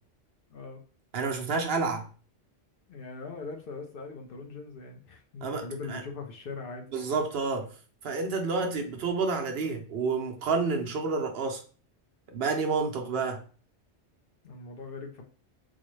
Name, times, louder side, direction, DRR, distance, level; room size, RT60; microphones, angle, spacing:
voice 1, 0.5-0.8 2.9-6.9 14.4-15.2, left 4 dB, 60° left, 0.7 m, -41 dB
voice 2, 1.1-2.1 5.4-5.6 5.9-6.0 6.9-7.7 8.0-11.6 12.3-13.4, right 4 dB, 65° right, 0.8 m, -29 dB
4.0 x 2.1 x 3.0 m
omnidirectional pair, 1.2 m